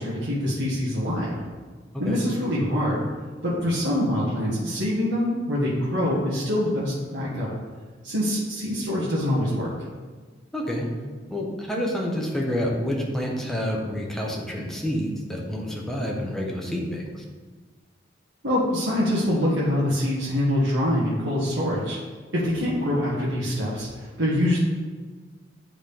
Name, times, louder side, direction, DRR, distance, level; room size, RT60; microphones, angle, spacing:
voice 1, 0.0-1.3 2.0-3.0 3.4-7.5 8.0-9.7 18.4-22.0 22.3-24.6, left 1 dB, 80° right, -8 dB, 1.5 m, -24 dB
voice 2, 10.5-10.9 11.3-17.2, equal, ahead, -2 dB, 1.0 m, -28 dB
10.0 x 3.9 x 3.4 m, 1.4 s
head